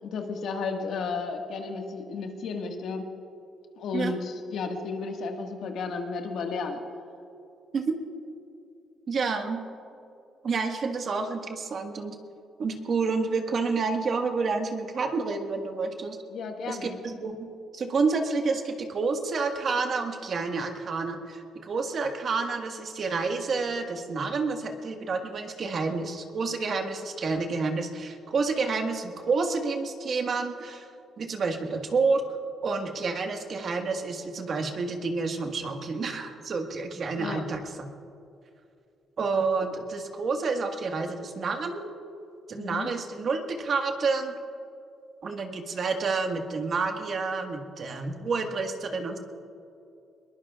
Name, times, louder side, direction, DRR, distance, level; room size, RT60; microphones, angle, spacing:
voice 1, 0.0-3.0 3.8-6.8 16.3-17.0 37.2-37.4 42.6-42.9, left 4 dB, 70° left, 3 dB, 1.7 m, -33 dB
voice 2, 9.1-9.6 10.4-12.1 12.6-16.2 16.7-17.5 17.7-30.9 31.2-32.2 32.6-37.7 39.2-41.9 42.5-44.3 45.2-49.2, right 4 dB, 50° right, 4 dB, 1.6 m, -29 dB
22.0 x 20.5 x 2.4 m, 2.6 s
cardioid pair, 90°, 0 cm